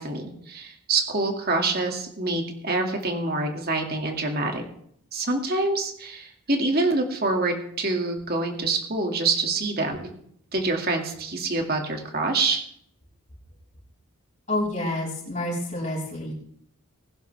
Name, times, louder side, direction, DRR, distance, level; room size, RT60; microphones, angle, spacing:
voice 1, 0.0-4.6 5.1-10.1 10.5-12.6, right 3 dB, 45° right, 3 dB, 2.3 m, -26 dB
voice 2, 14.5-16.3, left 1 dB, 35° left, -3 dB, 6.1 m, -28 dB
21.0 x 11.0 x 3.5 m, 0.66 s
head